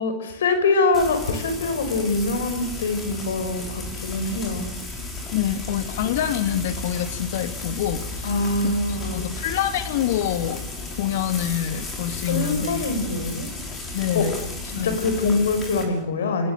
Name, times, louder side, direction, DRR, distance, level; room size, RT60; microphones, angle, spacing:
voice 1, 0.0-4.7 8.2-9.3 12.3-13.5 14.1-14.2 14.8-16.5, left 3 dB, 85° left, 9 dB, 5.7 m, -24 dB
Frying (food), 0.9-15.8, left 2 dB, 25° left, 7.0 m, -34 dB
voice 2, 5.3-8.3 8.6-10.6 11.0-13.0 13.9-14.5 14.8-15.0, left 10 dB, 70° left, 9 dB, 2.6 m, -26 dB
29.0 x 20.5 x 8.1 m, 0.77 s
hypercardioid pair, 125°, 0 cm